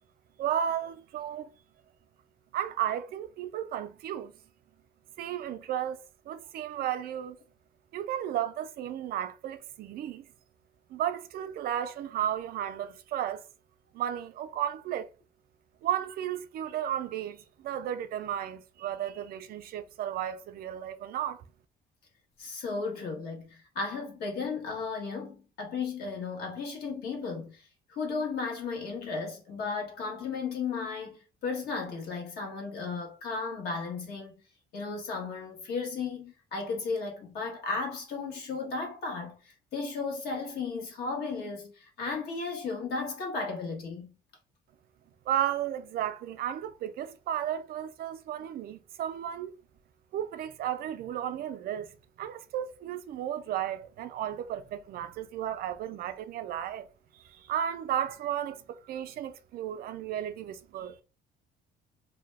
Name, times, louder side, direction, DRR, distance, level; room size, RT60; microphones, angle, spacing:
voice 1, 0.4-1.5 2.5-4.3 5.2-7.4 7.9-10.3 10.9-13.5 13.9-15.1 15.8-21.4 45.3-49.5 50.1-51.9 52.2-56.9 57.1-61.0, right 10 dB, 60° right, 0.4 m, -34 dB
voice 2, 22.4-27.5 27.9-34.3 34.7-39.3 39.7-44.1, left 4 dB, 70° left, 1.3 m, -35 dB
2.7 x 2.1 x 3.3 m
cardioid pair, 110°, 17 cm